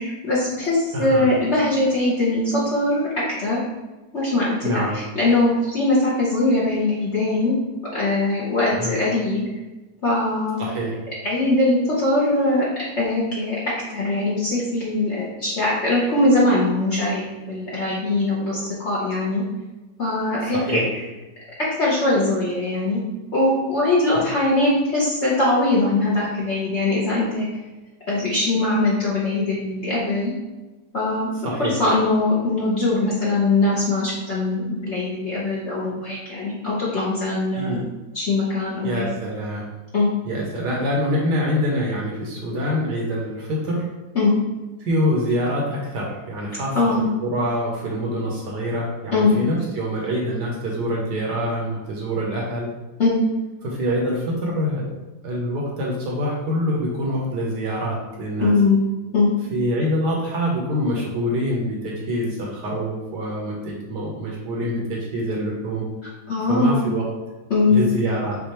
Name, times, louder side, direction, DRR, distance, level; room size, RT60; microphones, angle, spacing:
voice 1, 0.0-3.1 3.4-3.6 4.1-7.5 7.9-9.5 10.0-10.6 11.2-12.6 13.0-13.6 13.9-19.4 20.0-20.8 21.8-23.0 23.3-27.5 28.1-30.3 30.9-31.3 31.6-37.8 38.1-39.0 39.9-40.1 44.1-44.3 46.7-47.1 49.1-49.3 53.0-53.2 58.4-58.8 59.1-59.3 66.3-66.8 67.5-67.9, left 2 dB, 50° left, -7 dB, 0.9 m, -21 dB
voice 2, 0.9-1.3 4.6-5.0 8.7-9.0 10.6-11.0 20.5-20.8 24.1-24.2 31.4-31.7 37.6-37.8 38.8-39.7 40.2-43.9 44.8-52.7 53.6-54.9 55.2-58.5 59.5-65.8 66.5-67.1 67.7-68.4, equal, 65° right, -2 dB, 1.4 m, -25 dB
6.4 x 2.5 x 2.9 m, 1.1 s
omnidirectional pair, 2.1 m